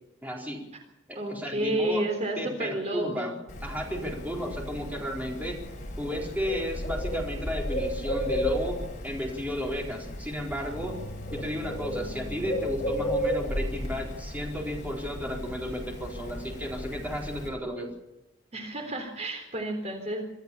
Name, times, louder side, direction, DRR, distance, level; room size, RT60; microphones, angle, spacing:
voice 1, 0.2-0.6 1.1-2.0 2.4-3.4 3.6-5.6 6.0-11.0 11.3-17.9, equal, 10° right, 0 dB, 4.2 m, -33 dB
voice 2, 1.2-3.4 18.5-20.3, right 1 dB, 35° right, 4 dB, 3.7 m, -31 dB
Bird, 3.5-17.5, equal, 40° left, 6.5 m, -34 dB
24.5 x 14.5 x 7.1 m, 0.92 s
head